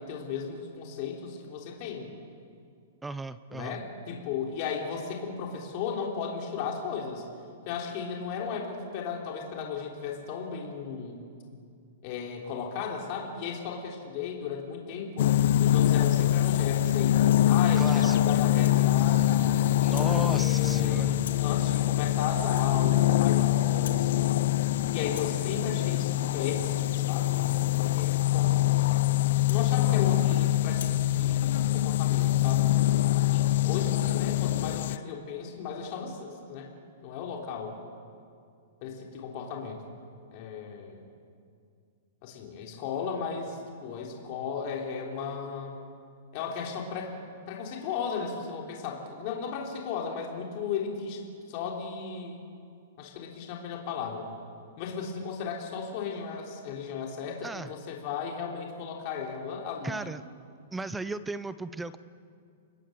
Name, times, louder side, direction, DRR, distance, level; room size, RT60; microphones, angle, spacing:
voice 1, 0.0-2.1 3.5-7.2 7.7-11.2 12.0-15.3 15.6-19.8 20.3-24.4 24.9-27.7 27.9-28.6 29.5-32.7 33.3-36.7 37.0-37.7 38.8-39.8 40.3-41.0 42.2-45.7 46.3-47.1 47.5-51.2 51.5-52.4 53.0-54.3 54.8-60.1, left 6 dB, 40° left, 0 dB, 3.5 m, -35 dB
voice 2, 3.0-3.8 17.8-18.4 19.8-21.2 57.4-57.7 59.8-60.2 60.7-62.0, right 3 dB, 5° right, 15 dB, 0.5 m, -36 dB
sound 1, 15.2-35.0, left 14 dB, 55° left, 0.5 m, -24 dB
Rattle (instrument), 15.9-16.3 16.8-17.5 18.0-18.2 18.6-18.8 19.1-19.6 19.8-20.2 20.5-20.8 21.2-21.5 21.9-22.1 22.4-23.4 23.7-24.1 24.4-24.7 25.0-30.3 30.7-31.0, left 9 dB, 85° left, 2.6 m, -50 dB
29.5 x 20.0 x 7.8 m, 2.3 s
hypercardioid pair, 165°, 0 cm